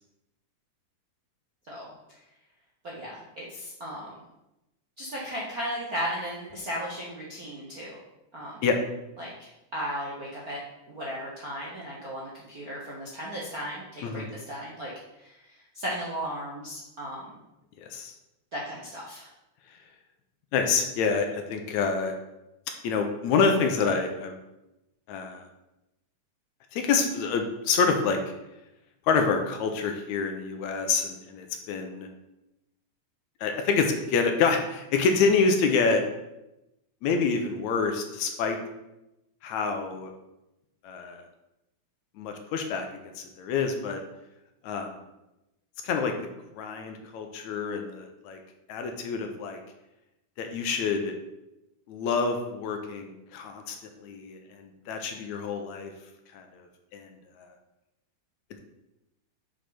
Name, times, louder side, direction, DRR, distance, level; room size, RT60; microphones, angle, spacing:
voice 1, 2.8-4.1 5.0-8.0 8.3-8.5 9.2-10.6 10.9-14.9 15.2-15.4 15.7-17.3 18.5-19.3, equal, 50° right, -6 dB, 1.1 m, -36 dB
voice 2, 17.8-18.1 20.5-22.1 22.8-24.4 25.1-25.4 26.7-28.2 29.1-32.1 33.4-36.0 37.0-38.6 39.4-40.1 40.8-41.2 42.2-42.9 43.2-44.0 44.6-44.9 45.8-46.1 46.6-48.4 48.7-49.6 50.4-51.1 51.9-53.8 54.0-55.9 56.3-56.5 56.9-57.1, left 5 dB, 75° left, 4 dB, 2.0 m, -27 dB
6.5 x 5.2 x 5.9 m, 0.93 s
omnidirectional pair, 3.6 m